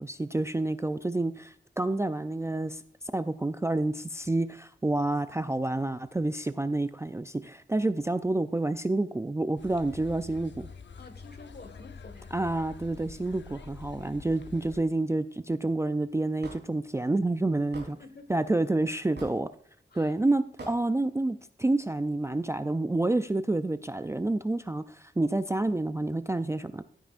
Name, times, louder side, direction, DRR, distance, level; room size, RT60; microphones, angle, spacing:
voice 1, 0.0-2.8 3.1-10.7 12.3-18.0 18.3-19.5 19.9-26.8, right 2 dB, 15° right, 11 dB, 0.4 m, -29 dB
sound 1, 9.6-14.8, left 5 dB, 70° left, 0.7 m, -46 dB
voice 2, 11.0-12.3 17.9-18.4 19.9-20.1, left 3 dB, 55° left, 8 dB, 1.6 m, -49 dB
Hammer / Wood, 16.4-16.6 17.7-17.9 19.2-19.4 20.6-20.8, right 2 dB, 65° right, 3.7 m, -42 dB
15.0 x 9.1 x 2.5 m, 0.63 s
wide cardioid pair, 105°, 19 cm